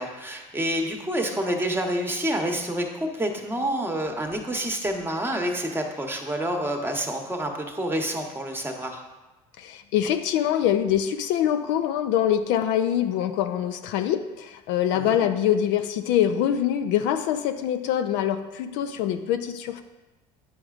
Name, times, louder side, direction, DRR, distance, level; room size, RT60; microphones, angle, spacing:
voice 1, 0.0-9.0 14.9-15.2, right 1 dB, 10° right, 3 dB, 1.0 m, -28 dB
voice 2, 9.6-19.8, left 10 dB, 70° left, 9 dB, 0.4 m, -24 dB
9.2 x 4.8 x 2.4 m, 1.1 s
hypercardioid pair, 75°, 19 cm